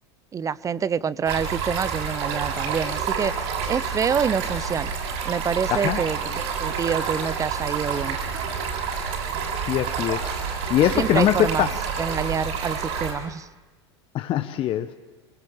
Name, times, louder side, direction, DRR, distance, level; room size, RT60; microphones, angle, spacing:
voice 1, 0.3-5.0 5.2-8.2 10.9-11.7 12.0-13.5, right 7 dB, 25° right, 19 dB, 0.8 m, -27 dB
Stream, 1.3-13.1, right 6 dB, 60° right, 7.4 m, -28 dB
voice 2, 9.7-10.3 10.7-11.8 14.1-14.9, left 12 dB, 40° left, 9 dB, 0.9 m, -22 dB
25.0 x 20.0 x 7.2 m, 1.2 s
hypercardioid pair, 90°, 14 cm